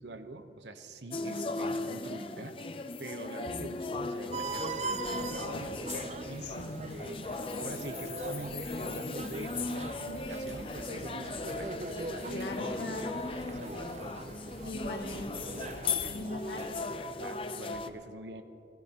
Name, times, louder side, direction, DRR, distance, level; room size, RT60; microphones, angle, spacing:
voice 1, 0.0-5.8 6.3-6.7 6.9-7.1 7.6-12.4 13.3-14.0 17.2-18.4, right 2 dB, 80° right, 8 dB, 0.9 m, -44 dB
sound 1, 1.1-17.9, left 3 dB, 30° left, 0.5 m, -37 dB
sound 2, 4.3-17.0, right 3 dB, 40° right, 0.5 m, -42 dB
voice 2, 6.4-6.9 12.3-13.2 14.7-15.5 15.7-16.8, left 1 dB, 75° left, 1 dB, 1.8 m, -40 dB
sound 3, 7.0-11.5, left 11 dB, 55° left, 1.5 m, -49 dB
27.0 x 15.5 x 2.9 m, 3.0 s
head